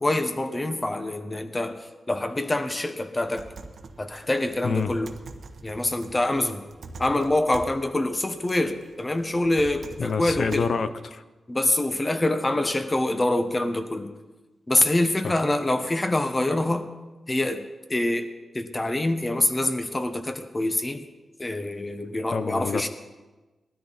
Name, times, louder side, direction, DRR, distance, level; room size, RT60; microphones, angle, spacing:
voice 1, 0.0-3.5 4.0-5.1 5.6-6.6 7.0-10.7 11.5-14.1 14.7-16.9 17.3-17.6 17.9-18.3 18.5-21.0 21.4-22.9, left 1 dB, 25° left, 7 dB, 1.3 m, -25 dB
sound 1, 3.2-10.6, right 3 dB, 70° right, 1.2 m, -44 dB
voice 2, 10.0-11.2 15.2-15.3 22.3-22.9, left 5 dB, 65° left, 11 dB, 0.8 m, -27 dB
19.5 x 13.0 x 4.3 m, 1.2 s
cardioid pair, 75°, 0 cm